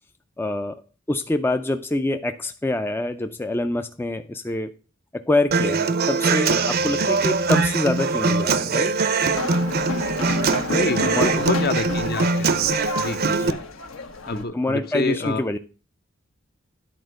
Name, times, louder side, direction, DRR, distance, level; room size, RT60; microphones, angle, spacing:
voice 1, 0.4-4.7 5.2-8.9 11.1-11.4 13.4-13.6 14.3-15.6, left 2 dB, 10° left, 7 dB, 0.4 m, -26 dB
Human voice / Acoustic guitar, 5.5-13.5, right 4 dB, 50° right, 0.6 m, -22 dB
sound 1, 9.3-14.4, left 3 dB, 75° left, 1.3 m, -31 dB
voice 2, 10.7-12.7 13.0-13.5 14.3-15.4, left 2 dB, 50° left, 9 dB, 0.8 m, -27 dB
10.0 x 4.3 x 6.3 m, 0.35 s
head